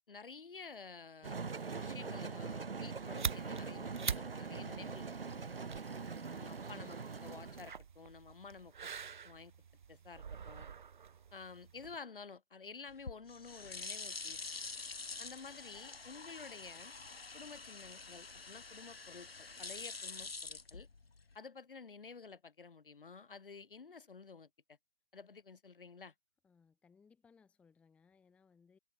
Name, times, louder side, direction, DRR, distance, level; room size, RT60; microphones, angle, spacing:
voice 1, 0.0-1.3 1.8-5.5 6.4-8.9 9.2-9.5 9.9-10.7 11.3-14.4 15.2-16.9 17.3-20.9 21.3-24.5 25.1-26.1, left 5 dB, 65° left, 3.0 m, -52 dB
sound 1, 1.2-7.7, right 4 dB, 75° right, 1.3 m, -43 dB
sound 2, 2.8-12.0, right 7 dB, 55° right, 1.1 m, -46 dB
voice 2, 6.0-6.4 26.4-28.8, left 5 dB, 5° left, 1.0 m, -67 dB
sound 3, 12.9-21.4, left 4 dB, 80° left, 1.5 m, -47 dB
figure-of-eight pair, 140°, 29 cm